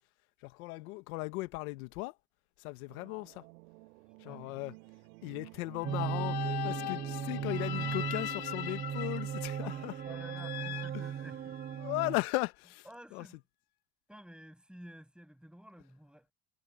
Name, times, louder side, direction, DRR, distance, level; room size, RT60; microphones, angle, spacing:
voice 1, 0.4-2.1 2.6-3.4 4.2-4.7 5.2-9.9 10.9-11.0 11.8-12.8 13.1-13.2, left 23 dB, 85° left, 1.5 m, -37 dB
sound 1, 2.9-8.3, right 26 dB, 85° right, 8.0 m, -52 dB
voice 2, 4.2-4.6 9.6-11.6 12.8-13.4 14.1-16.3, equal, ahead, 6.1 m, -52 dB
sound 2, 5.8-11.8, left 14 dB, 60° left, 1.5 m, -41 dB
sound 3, 5.8-12.2, right 9 dB, 25° right, 0.4 m, -37 dB
supercardioid pair, 65°, 42 cm